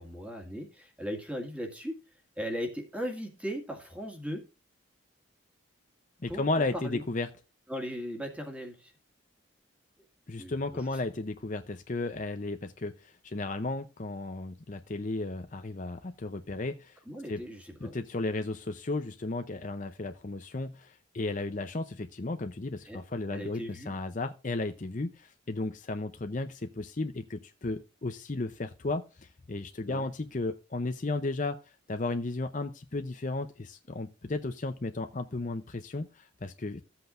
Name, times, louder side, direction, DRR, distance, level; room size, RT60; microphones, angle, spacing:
voice 1, 0.0-4.5 6.3-7.0 7.7-8.9 10.4-11.0 17.1-18.0 22.8-23.0 23.3-23.9 29.9-30.1, equal, 5° right, 2 dB, 1.9 m, -38 dB
voice 2, 6.2-7.3 10.3-17.0 17.3-17.4 17.8-31.6 31.9-36.8, left 2 dB, 40° left, 7 dB, 0.6 m, -34 dB
15.0 x 8.0 x 2.5 m, 0.31 s
head